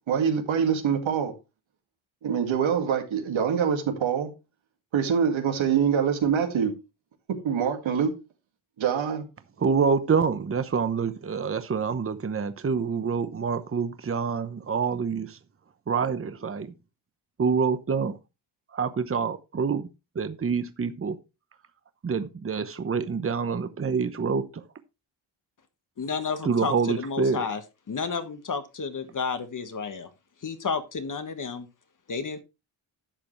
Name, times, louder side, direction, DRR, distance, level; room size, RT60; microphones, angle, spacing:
voice 1, 0.1-1.3 2.2-4.3 4.9-6.7 7.3-8.1 8.8-9.3, right 7 dB, 80° right, 2.2 m, -24 dB
voice 2, 9.6-15.4 15.9-16.7 17.4-18.2 18.7-19.8 20.1-21.2 22.0-24.6 26.4-27.4, right 5 dB, 30° right, 1.0 m, -26 dB
voice 3, 26.0-27.6 27.9-30.1 30.4-31.7 32.1-32.4, left 5 dB, 40° left, 1.4 m, -31 dB
11.5 x 7.0 x 3.2 m
cardioid pair, 105°, 46 cm